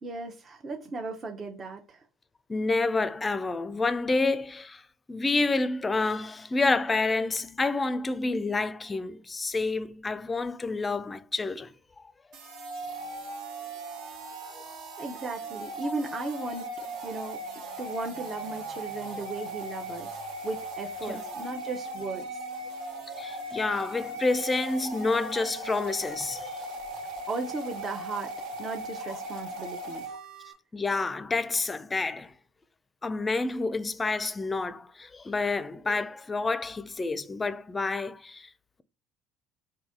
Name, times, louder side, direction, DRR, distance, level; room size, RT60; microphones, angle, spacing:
voice 1, 0.0-2.0 15.0-16.7 17.0-17.4 17.8-20.1 20.4-22.3 27.3-28.3 28.6-30.0, right 3 dB, 35° right, 0.7 m, -36 dB
voice 2, 2.5-4.8 5.1-11.7 12.0-12.1 14.5-14.6 21.1-21.2 23.1-26.6 30.7-32.3 33.0-38.5, left 3 dB, 25° left, 0.4 m, -29 dB
sound 1, 12.3-30.5, right 1 dB, 70° right, 1.2 m, -38 dB
4.0 x 2.7 x 3.6 m
hypercardioid pair, 70°, 0 cm